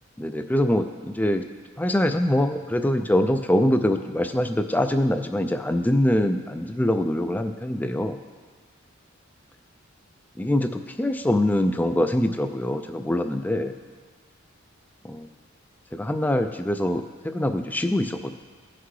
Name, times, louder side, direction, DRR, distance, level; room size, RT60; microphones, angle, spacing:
voice 1, 0.2-1.4 1.8-8.2 10.4-13.7 15.0-15.3 15.9-18.3, left 1 dB, 10° left, 8 dB, 0.3 m, -24 dB
16.5 x 5.8 x 3.2 m, 1.5 s
head